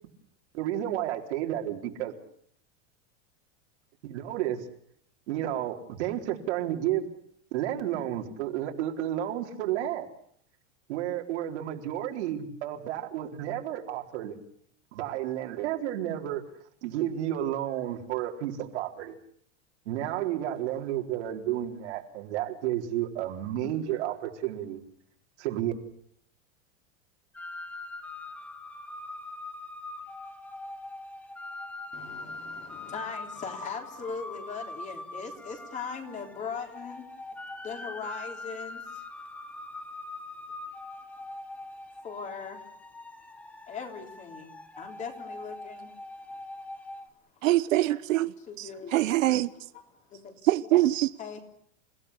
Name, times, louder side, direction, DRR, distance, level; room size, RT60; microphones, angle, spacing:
voice 1, 0.5-2.1 4.0-4.7 5.3-7.1 7.5-10.1 10.9-14.3 14.9-16.4 16.8-19.2 19.9-24.8 25.4-25.7, right 12 dB, 60° right, 4.3 m, -31 dB
sound 1, 27.3-47.1, left 2 dB, 5° left, 1.0 m, -42 dB
voice 2, 31.9-37.0 37.6-39.0 42.0-42.6 43.7-45.9 46.3-46.4 48.4-50.4 51.2-51.4, left 5 dB, 20° left, 3.7 m, -40 dB
voice 3, 47.4-48.3 48.9-49.5 50.5-51.1, right 15 dB, 85° right, 1.2 m, -23 dB
29.5 x 16.5 x 8.2 m
supercardioid pair, 170°, 38 cm